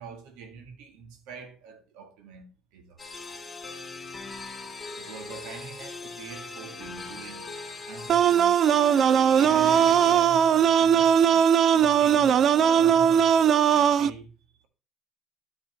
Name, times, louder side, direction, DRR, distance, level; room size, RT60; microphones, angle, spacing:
voice 1, 0.0-3.0 4.9-7.5 7.9-8.6 9.3-14.3, right 5 dB, 80° right, 1.9 m, -44 dB
sound 1, 3.0-10.1, left 3 dB, 15° left, 2.6 m, -40 dB
sound 2, 8.1-14.1, right 8 dB, 50° right, 0.5 m, -19 dB
9.8 x 7.2 x 4.1 m
cardioid pair, 110°, 0 cm